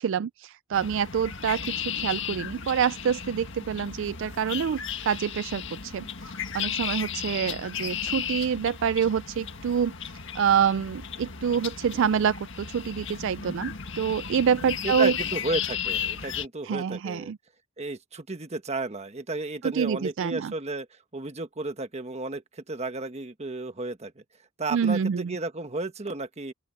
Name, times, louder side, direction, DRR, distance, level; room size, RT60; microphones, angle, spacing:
voice 1, 0.0-15.2 16.6-17.4 19.6-20.5 24.7-25.4, right 7 dB, 60° right, 0.3 m, -27 dB
sound 1, 0.7-16.5, left 8 dB, 60° left, 1.8 m, -35 dB
voice 2, 14.8-17.3 17.8-24.1 24.6-26.5, right 2 dB, 30° right, 1.4 m, -33 dB
open air
head